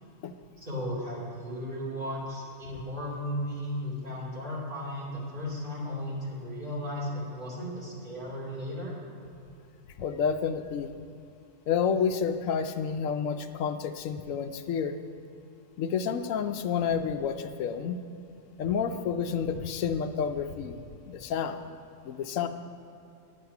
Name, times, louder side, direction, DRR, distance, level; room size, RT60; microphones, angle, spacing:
voice 1, 0.6-8.9, equal, 40° right, -7 dB, 3.0 m, -35 dB
voice 2, 10.0-10.9 11.7-15.0 15.8-18.0 18.6-21.7 22.0-22.5, left 7 dB, 80° left, 8 dB, 1.0 m, -30 dB
11.0 x 7.7 x 5.8 m, 2.7 s
omnidirectional pair, 1.4 m